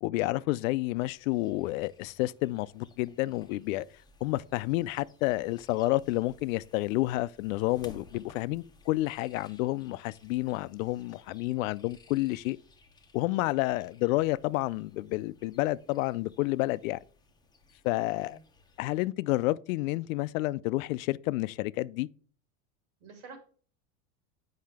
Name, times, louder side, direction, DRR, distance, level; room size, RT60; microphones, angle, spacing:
voice 1, 0.0-3.9 4.2-12.6 13.1-17.0 17.8-18.4 18.8-22.1, left 19 dB, 80° left, 0.5 m, -30 dB
sound 1, 0.9-19.1, left 3 dB, 10° left, 0.7 m, -58 dB
voice 2, 17.9-18.4 23.0-23.4, right 5 dB, 85° right, 2.8 m, -50 dB
7.6 x 5.6 x 3.4 m
supercardioid pair, 140°, 40 cm